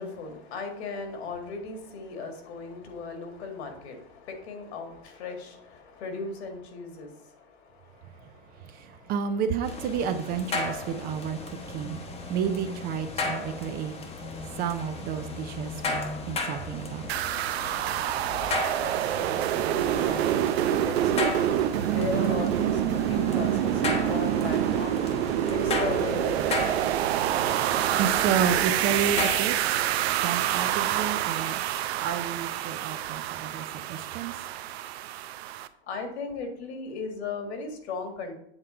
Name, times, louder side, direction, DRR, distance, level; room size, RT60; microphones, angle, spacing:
voice 1, 0.0-9.1 18.8-21.3 21.9-25.1 25.5-26.5 35.9-38.3, left 4 dB, 70° left, 1.9 m, -37 dB
voice 2, 8.0-17.2 28.0-29.8 30.2-31.6 32.0-34.4, right 7 dB, 25° right, 0.5 m, -31 dB
sound 1, 9.6-29.4, left 3 dB, 20° left, 0.9 m, -35 dB
sound 2, 17.1-35.7, right 12 dB, 65° right, 0.6 m, -27 dB
8.0 x 3.6 x 5.5 m
supercardioid pair, 135°, 34 cm